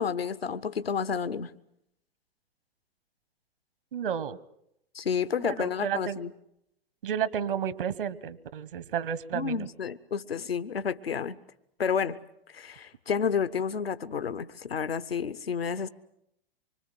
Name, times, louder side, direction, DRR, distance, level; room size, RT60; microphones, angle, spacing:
voice 1, 0.0-1.5 4.9-6.3 9.3-11.4 11.8-12.2 12.5-15.9, left 6 dB, 80° left, 14 dB, 0.9 m, -30 dB
voice 2, 3.9-4.4 5.4-6.2 7.0-9.7, right 8 dB, 65° right, 16 dB, 1.4 m, -32 dB
25.5 x 25.0 x 7.8 m, 0.79 s
figure-of-eight pair, 100°, 29 cm